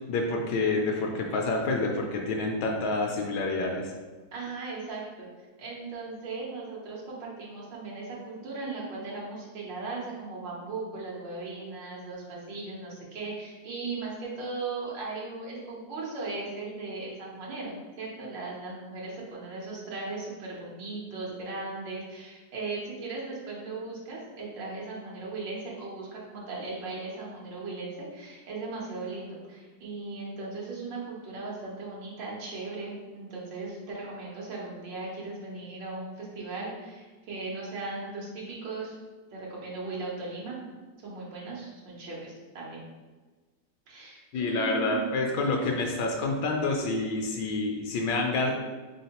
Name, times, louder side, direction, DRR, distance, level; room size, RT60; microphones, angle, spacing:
voice 1, 0.1-3.9 44.3-48.5, left 3 dB, 80° left, 1 dB, 1.2 m, -28 dB
voice 2, 4.3-5.3 5.6-39.0 39.3-40.6 41.0-42.8 43.9-45.2 45.7-45.8, right 3 dB, 90° right, -4 dB, 1.6 m, -37 dB
3.8 x 3.6 x 2.9 m, 1.3 s
omnidirectional pair, 1.9 m